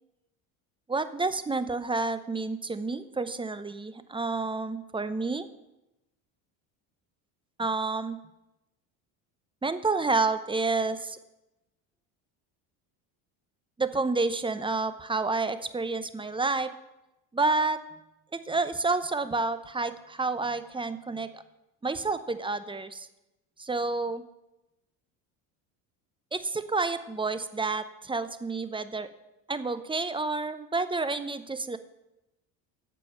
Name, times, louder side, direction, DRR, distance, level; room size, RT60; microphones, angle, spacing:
voice 1, 0.9-5.5 7.6-8.2 9.6-11.2 13.8-16.7 17.3-17.8 18.3-21.4 21.8-23.1 23.6-24.2 26.3-29.1 29.5-31.8, right 3 dB, 10° right, 12 dB, 0.7 m, -29 dB
8.4 x 7.0 x 7.4 m, 0.95 s
supercardioid pair, 85°, 42 cm